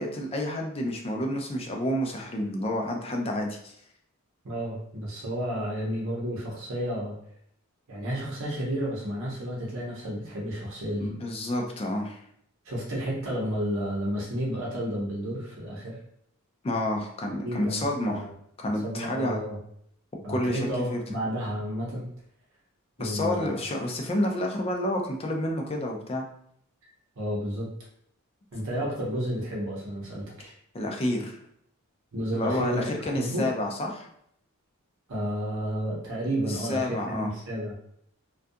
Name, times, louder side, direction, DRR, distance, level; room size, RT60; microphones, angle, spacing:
voice 1, 0.0-3.7 11.0-12.2 16.6-18.2 18.6-19.4 20.3-21.0 23.0-26.3 30.7-31.4 32.3-34.1 36.5-37.3, left 1 dB, 25° left, 1 dB, 0.4 m, -29 dB
voice 2, 4.4-7.1 7.9-11.1 12.6-16.0 17.4-18.3 18.8-19.6 20.2-22.1 23.0-23.5 26.8-26.9 27.2-27.7 28.5-30.5 32.1-32.8 33.1-33.5 35.1-37.8, equal, 65° right, -3 dB, 0.7 m, -31 dB
2.4 x 2.2 x 2.6 m, 0.69 s
head